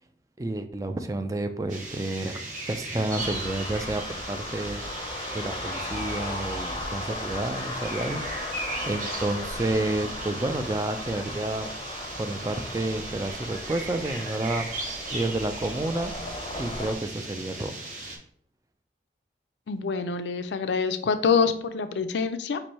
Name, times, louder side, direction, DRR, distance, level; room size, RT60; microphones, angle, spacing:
voice 1, 0.4-4.8 5.3-8.3 8.8-11.7 12.2-16.1 16.6-17.7, right 2 dB, 20° right, 8 dB, 0.3 m, -30 dB
sound 1, 1.7-18.2, right 2 dB, 45° right, 0.9 m, -37 dB
sound 2, 3.1-16.9, left 2 dB, 25° left, 0.6 m, -37 dB
voice 2, 19.7-22.6, left 5 dB, 75° left, 10 dB, 0.4 m, -26 dB
4.6 x 2.6 x 4.2 m, 0.62 s
head